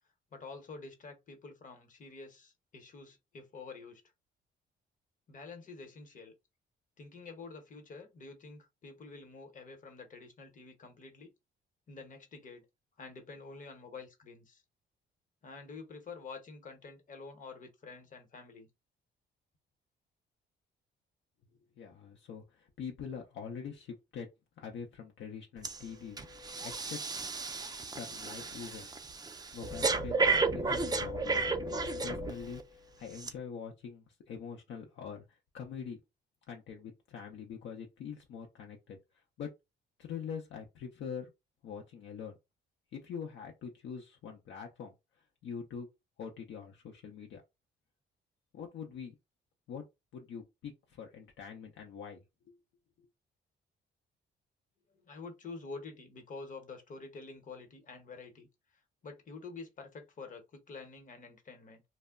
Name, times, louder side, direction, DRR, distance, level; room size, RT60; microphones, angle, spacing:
voice 1, 0.3-4.0 5.3-6.3 7.0-11.3 11.9-12.6 13.0-14.6 15.4-18.7 54.9-58.5 58.7-61.8, left 4 dB, 40° left, 0.9 m, -48 dB
voice 2, 21.8-24.3 24.6-26.2 26.6-27.0 27.9-31.5 32.0-36.0 36.5-39.5 40.0-41.3 41.6-42.4 42.9-44.9 45.4-45.9 46.2-47.4 48.5-49.2 49.7-49.8 50.1-52.6 53.0-53.1, left 6 dB, 70° left, 0.6 m, -44 dB
Breathing, 25.6-25.8 26.2-32.6 33.2-33.3, right 3 dB, 20° right, 0.4 m, -33 dB
2.1 x 2.0 x 3.5 m
cardioid pair, 90°, 20 cm